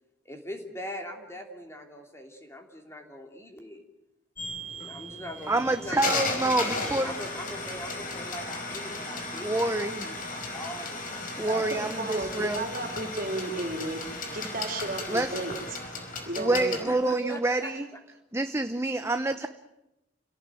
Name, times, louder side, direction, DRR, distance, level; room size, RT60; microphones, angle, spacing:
voice 1, 0.2-3.8 4.7-11.6 16.7-18.0, equal, 15° left, 3 dB, 3.2 m, -41 dB
sound 1, 4.4-16.8, left 2 dB, 45° left, 5.1 m, -35 dB
voice 2, 5.5-7.2 9.4-10.1 11.4-12.7 15.1-15.4 16.4-17.9 18.3-19.5, right 2 dB, 15° right, 8 dB, 0.8 m, -27 dB
voice 3, 11.5-14.0 14.3-15.6 16.3-16.8, right 2 dB, 50° right, 4 dB, 4.0 m, -33 dB
29.0 x 18.0 x 9.2 m, 0.93 s
head